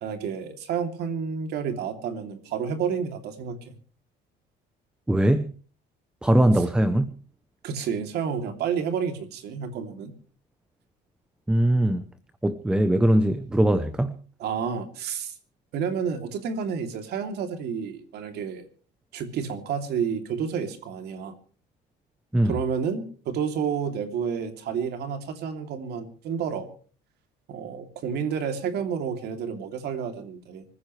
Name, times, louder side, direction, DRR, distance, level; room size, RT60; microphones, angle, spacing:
voice 1, 0.0-3.8 7.6-10.1 14.4-15.3 15.7-18.7 19.1-21.3 22.4-26.7 27.5-30.6, right 7 dB, 55° right, 2.9 m, -30 dB
voice 2, 5.1-5.5 6.2-7.1 11.5-12.1 12.4-14.2 22.3-22.6, right 1 dB, 5° right, 0.7 m, -21 dB
25.0 x 15.0 x 3.2 m
cardioid pair, 160°, 20 cm